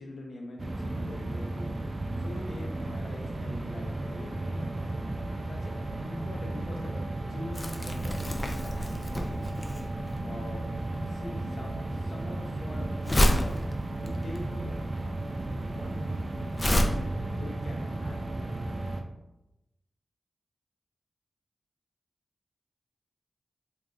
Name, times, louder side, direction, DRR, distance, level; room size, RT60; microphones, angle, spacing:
voice 1, 0.0-1.8 2.2-4.7 5.3-5.7 6.0-7.0 7.3-9.6 10.2-10.7 11.0-13.6 14.0-14.8 15.5-16.3 16.8-18.6, left 1 dB, 85° left, 0 dB, 0.7 m, -43 dB
sound 1, 0.6-19.0, right 2 dB, 50° right, 0.4 m, -34 dB
Crumpling crinkling, 7.5-16.8, equal, 30° left, 0.5 m, -30 dB
3.2 x 2.4 x 3.7 m, 0.93 s
cardioid pair, 60°, 0 cm